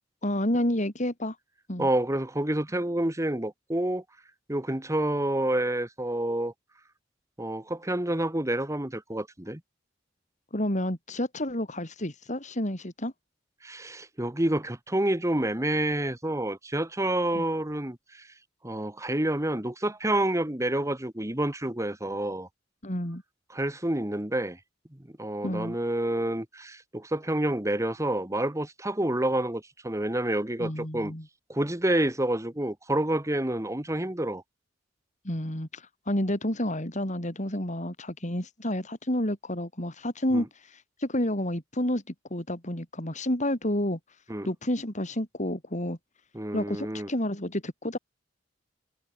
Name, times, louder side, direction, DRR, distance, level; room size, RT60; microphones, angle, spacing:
voice 1, 0.2-1.4 1.7-1.9 10.5-13.1 17.4-17.5 22.8-23.2 25.4-25.8 30.6-31.3 35.2-44.0 44.4-46.0 46.5-48.0, left 1 dB, 40° left, 5.7 m, -30 dB
voice 2, 1.8-4.0 4.5-6.5 7.4-9.6 13.6-18.3 18.6-22.5 23.5-24.6 24.9-31.1 31.5-34.4 40.3-40.5 44.3-44.5 46.3-47.1, right 1 dB, 15° right, 1.7 m, -28 dB
head